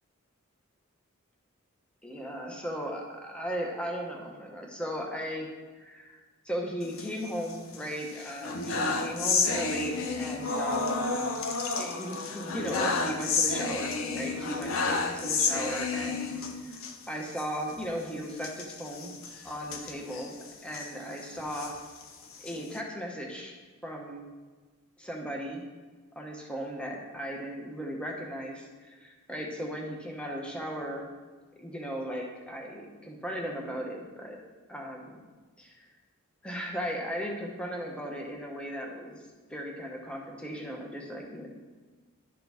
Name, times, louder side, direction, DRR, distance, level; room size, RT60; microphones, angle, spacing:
voice 1, 2.0-5.5 5.8-6.2 6.4-11.0 11.8-16.3 16.6-19.1 19.4-21.7 22.4-23.5 23.8-24.3 25.0-25.6 26.2-31.1 31.6-34.4 34.7-35.2 35.6-35.9 36.4-39.2 39.5-41.5, equal, 5° left, 0 dB, 0.8 m, -37 dB
sound 1, 6.8-7.8 8.2-16.9 17.3-17.5 17.7-17.8 18.4-20.9 21.4-22.8, left 4 dB, 70° left, 0.6 m, -31 dB
11.5 x 3.8 x 3.4 m, 1.3 s
head